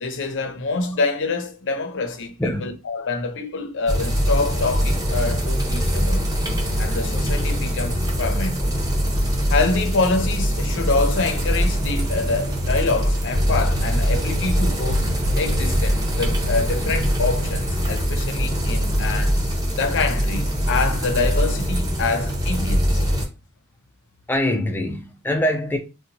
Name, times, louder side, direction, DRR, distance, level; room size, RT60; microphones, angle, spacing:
voice 1, 0.0-2.3 2.6-6.3 6.8-8.6 9.5-15.1 15.3-19.4 19.7-23.0, left 3 dB, 60° left, 0.6 m, -26 dB
voice 2, 2.4-2.7 24.3-25.8, left 1 dB, 10° left, 0.4 m, -23 dB
sound 1, 3.9-23.3, equal, 15° right, 0.8 m, -22 dB
Waves surf, 10.9-18.3, right 2 dB, 80° right, 0.4 m, -34 dB
2.8 x 2.2 x 3.8 m
head